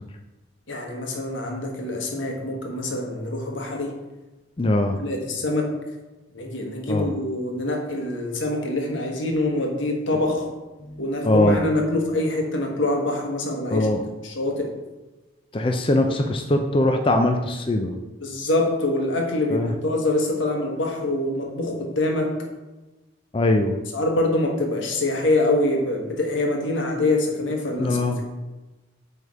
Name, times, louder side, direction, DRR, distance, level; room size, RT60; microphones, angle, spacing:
voice 1, 0.7-3.9 5.0-5.7 6.3-10.5 11.0-13.9 14.2-14.7 18.2-22.3 23.9-28.0, left 2 dB, 85° left, 2 dB, 1.4 m, -25 dB
voice 2, 4.6-5.0 6.9-7.1 10.8-11.6 13.7-14.0 15.5-18.0 19.5-19.7 23.3-23.8 27.8-28.3, left 1 dB, 30° left, 4 dB, 0.4 m, -21 dB
8.3 x 3.4 x 4.8 m, 1.1 s
head